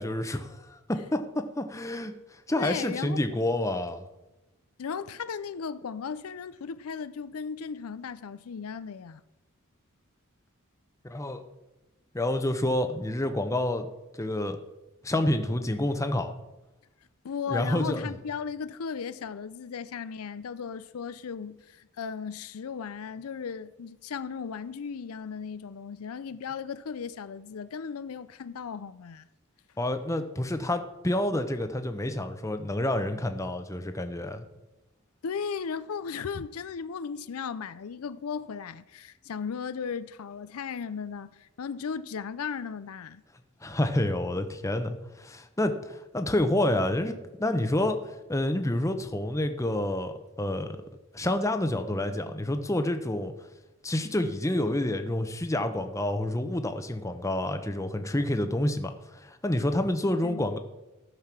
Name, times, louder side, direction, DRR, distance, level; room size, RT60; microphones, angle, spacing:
voice 1, 0.0-4.0 11.0-11.4 12.1-13.9 14.2-14.6 15.0-16.3 17.5-18.1 29.8-34.4 43.6-48.0 48.3-50.8 51.1-53.3 53.8-60.6, left 1 dB, 15° left, 0.8 m, -28 dB
voice 2, 2.6-3.4 4.8-9.2 17.2-29.3 35.2-43.2 60.2-60.5, left 6 dB, 85° left, 0.5 m, -36 dB
14.0 x 6.6 x 6.0 m
head